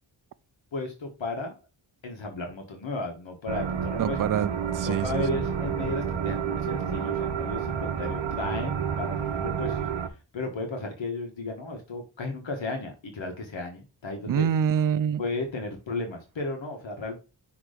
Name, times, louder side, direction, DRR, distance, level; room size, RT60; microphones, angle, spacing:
voice 1, 0.7-1.5 2.0-4.2 4.9-9.9 10.3-14.5 15.2-17.2, left 3 dB, 70° left, 1.5 m, -34 dB
sound 1, 3.5-10.1, right 7 dB, 65° right, 0.9 m, -30 dB
voice 2, 4.0-5.2 14.3-15.2, right 8 dB, 45° right, 0.5 m, -26 dB
6.0 x 3.1 x 5.0 m
cardioid pair, 65°, 47 cm